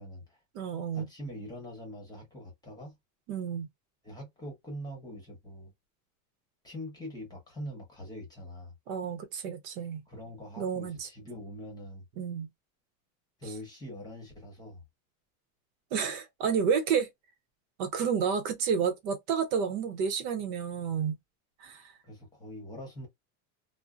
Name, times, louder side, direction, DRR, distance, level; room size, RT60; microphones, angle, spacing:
voice 1, 0.0-0.4 0.9-3.0 4.0-5.7 6.6-8.7 10.1-12.0 13.4-14.8 22.0-23.1, equal, 10° left, 1.0 m, -43 dB
voice 2, 0.5-1.1 3.3-3.7 8.9-10.0 10.6-11.1 12.2-12.5 15.9-17.1 17.8-21.2 21.6-21.9, right 7 dB, 70° right, 0.8 m, -30 dB
2.6 x 2.0 x 2.4 m
supercardioid pair, 150°, 43 cm